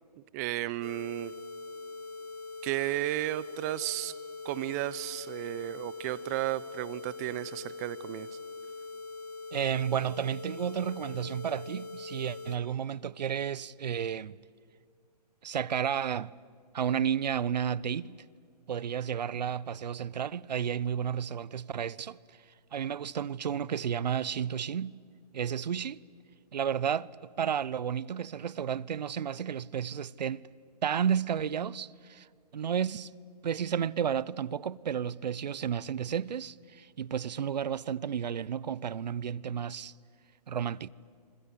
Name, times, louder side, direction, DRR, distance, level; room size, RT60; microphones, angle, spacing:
voice 1, 0.3-1.3 2.6-4.1 4.4-8.3, right 16 dB, 25° right, 0.6 m, -33 dB
sound 1, 0.8-12.6, left 3 dB, 65° left, 3.1 m, -43 dB
voice 2, 9.5-14.4 15.4-16.3 16.7-18.2 18.7-22.2 22.7-25.0 25.3-26.0 26.5-30.4 30.8-32.3 32.5-33.1 33.4-39.9 40.5-40.9, right 8 dB, 80° right, 0.7 m, -32 dB
26.5 x 25.5 x 8.3 m
hypercardioid pair, 155°, 21 cm